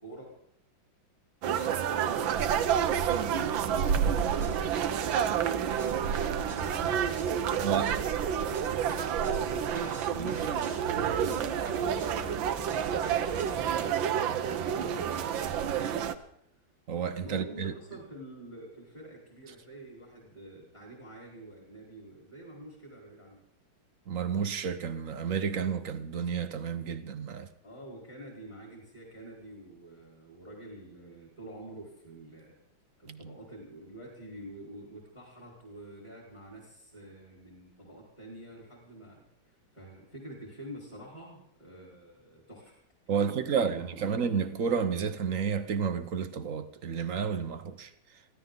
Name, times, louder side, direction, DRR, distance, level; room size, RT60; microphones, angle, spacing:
voice 1, 0.0-0.3 1.5-12.6 13.0-15.9 17.2-23.4 27.6-32.5 33.0-39.2 39.7-42.8 43.1-44.2, right 1 dB, 20° left, 4.5 m, -47 dB
sound 1, 1.4-16.1, right 8 dB, 80° right, 1.7 m, -29 dB
sound 2, 4.1-13.8, right 3 dB, 25° right, 1.3 m, -43 dB
voice 2, 7.6-7.9 16.9-17.7 24.1-27.5 33.1-33.2 43.1-47.9, right 6 dB, 50° right, 1.2 m, -31 dB
23.5 x 16.0 x 3.9 m
omnidirectional pair, 2.1 m